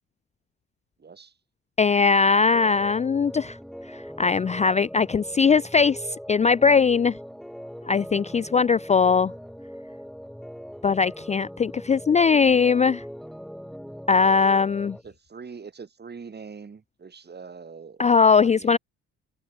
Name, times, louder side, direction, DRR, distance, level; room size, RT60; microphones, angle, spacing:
voice 1, 1.0-1.3 15.0-18.0 18.4-18.8, right 5 dB, 35° right, 3.2 m, -43 dB
voice 2, 1.8-3.6 3.9-6.0 6.3-7.2 7.9-9.3 10.8-13.0 14.1-15.0 18.0-18.8, left 5 dB, 25° left, 0.4 m, -20 dB
sound 1, 2.5-15.0, equal, ahead, 2.0 m, -41 dB
cardioid pair, 90°, 30 cm